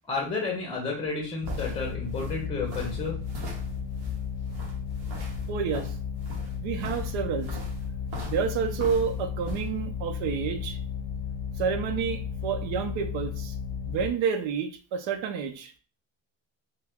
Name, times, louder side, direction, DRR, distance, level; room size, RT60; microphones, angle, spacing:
voice 1, 0.1-3.1, left 4 dB, 10° left, -1 dB, 0.9 m, -31 dB
sound 1, 1.0-9.7, right 1 dB, 55° right, 0.9 m, -41 dB
sound 2, 1.4-14.1, left 7 dB, 50° left, 0.7 m, -34 dB
voice 2, 5.5-5.9 6.6-7.6 8.2-10.8 11.6-13.5 13.8-15.7, right 6 dB, 80° right, 7 dB, 0.7 m, -29 dB
2.8 x 2.2 x 3.5 m, 0.38 s
cardioid pair, 130°, 46 cm